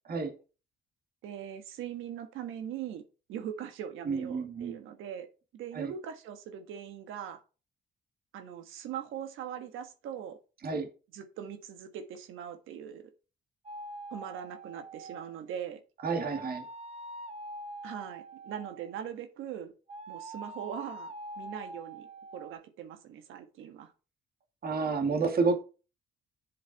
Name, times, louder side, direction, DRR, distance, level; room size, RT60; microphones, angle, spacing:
voice 1, 1.2-3.0 3.3-5.3 5.5-7.4 8.3-10.4 11.1-13.1 14.1-15.8 17.8-19.7 20.1-22.1 22.3-23.9, right 9 dB, 90° right, 1.5 m, -41 dB
voice 2, 4.1-4.8 5.7-5.9 10.6-10.9 16.0-16.6 24.6-25.6, right 4 dB, 50° right, 2.2 m, -30 dB
sound 1, 13.7-15.4 16.1-19.0 19.9-22.5, right 1 dB, 30° right, 1.3 m, -44 dB
7.7 x 7.0 x 4.1 m
cardioid pair, 90°, 20 cm